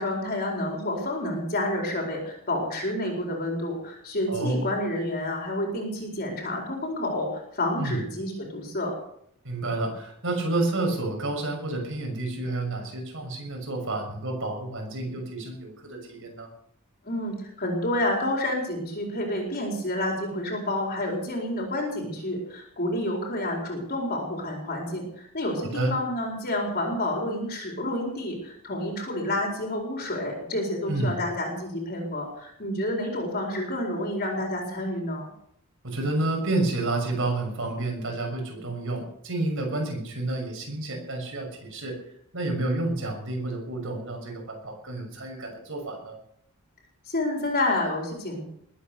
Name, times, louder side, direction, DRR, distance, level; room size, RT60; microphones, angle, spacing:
voice 1, 0.0-8.9 17.0-35.2 47.1-48.4, left 1 dB, 45° left, 0 dB, 4.5 m, -29 dB
voice 2, 4.3-4.7 7.8-8.0 9.4-16.5 25.6-26.0 30.9-31.2 35.8-42.0 42.3-46.2, right 2 dB, 65° right, 2 dB, 6.5 m, -30 dB
21.0 x 9.3 x 7.0 m, 0.69 s
head